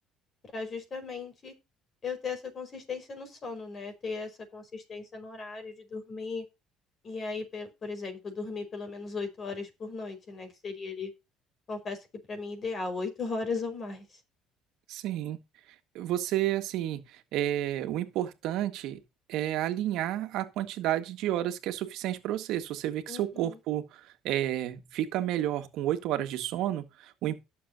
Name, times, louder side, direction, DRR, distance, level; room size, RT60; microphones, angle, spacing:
voice 1, 0.5-1.5 2.0-6.5 7.0-11.1 11.7-12.0 12.3-14.1 23.1-23.6, left 4 dB, 40° left, 5.0 m, -37 dB
voice 2, 14.9-15.4 16.0-19.0 19.3-27.4, right 13 dB, 75° right, 1.7 m, -31 dB
18.5 x 7.1 x 2.8 m
cardioid pair, 100°, 0 cm